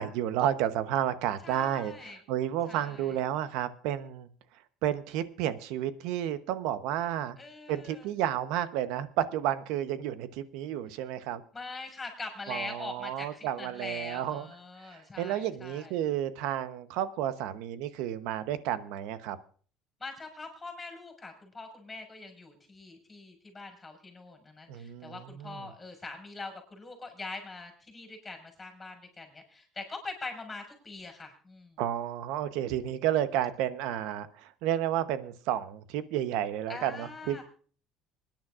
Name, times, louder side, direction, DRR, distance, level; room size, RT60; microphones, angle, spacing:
voice 1, 0.0-4.3 4.8-7.4 7.7-11.4 12.5-14.5 14.8-19.4 24.7-25.7 31.8-37.4, right 11 dB, 75° right, 13 dB, 0.9 m, -31 dB
voice 2, 1.4-2.2 2.7-3.2 7.4-8.1 11.5-15.9 20.0-31.8 36.7-37.4, left 3 dB, 15° left, 3 dB, 5.3 m, -43 dB
26.5 x 10.5 x 2.5 m, 0.43 s
cardioid pair, 130°, 0 cm